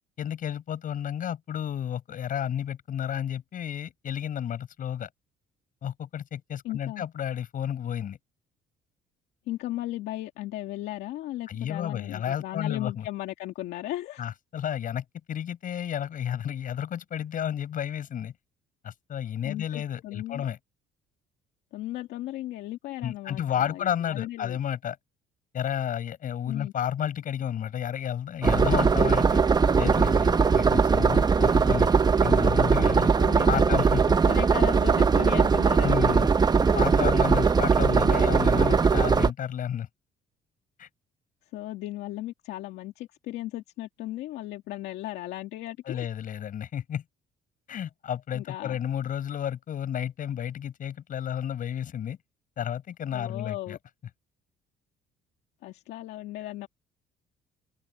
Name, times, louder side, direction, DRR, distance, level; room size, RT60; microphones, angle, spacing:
voice 1, 0.2-5.1 5.8-8.2 11.5-13.0 14.2-18.3 18.8-20.6 23.0-25.0 25.5-29.4 29.7-31.9 32.2-33.1 33.5-34.2 35.8-36.3 36.7-39.9 40.8-40.9 45.9-47.0 47.7-52.2 52.6-53.8, left 9 dB, 55° left, 6.8 m, -31 dB
voice 2, 6.6-7.1 9.5-14.2 19.4-20.4 21.7-24.6 26.5-26.7 29.8-30.2 33.2-33.7 34.2-36.2 41.5-46.1 48.3-48.8 53.1-53.8 55.6-56.7, left 15 dB, 85° left, 2.2 m, -36 dB
sound 1, 28.4-39.3, right 5 dB, 25° right, 0.8 m, -21 dB
open air
cardioid pair, 110°, 17 cm